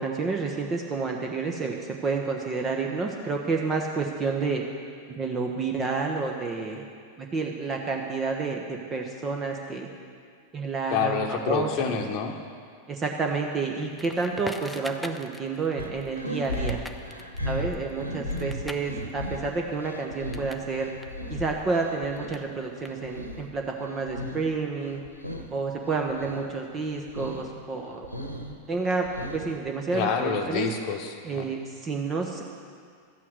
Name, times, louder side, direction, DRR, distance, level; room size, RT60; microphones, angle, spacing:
voice 1, 0.0-4.6 5.1-6.8 7.2-9.9 10.5-11.9 12.9-16.8 17.4-20.9 21.3-25.0 25.5-28.1 28.7-29.1 29.3-30.7 31.2-32.4, right 4 dB, 25° right, 1 dB, 1.1 m, -29 dB
voice 2, 10.9-12.4 29.9-31.5, left 6 dB, 40° left, 3 dB, 1.1 m, -27 dB
Crackle, 14.0-20.7 21.0-23.4, left 1 dB, 5° left, 0.6 m, -44 dB
sound 1, 15.8-22.4 22.7-24.5 24.8-25.5 25.9-26.5 26.8-27.5 27.8-29.7, left 1 dB, 90° left, 1.2 m, -36 dB
13.5 x 9.1 x 6.5 m, 2.2 s
figure-of-eight pair, 90°, 0 cm